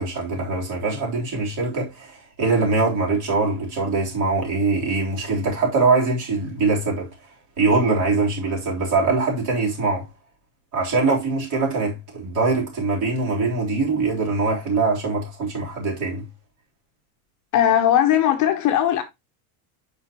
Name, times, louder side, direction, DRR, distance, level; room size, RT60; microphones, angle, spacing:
voice 1, 0.0-7.1 7.6-10.1 10.7-16.2, right 3 dB, 40° right, 3.6 m, -22 dB
voice 2, 17.5-19.0, left 10 dB, 40° left, 1.0 m, -18 dB
7.7 x 5.8 x 2.9 m
cardioid pair, 150°, 47 cm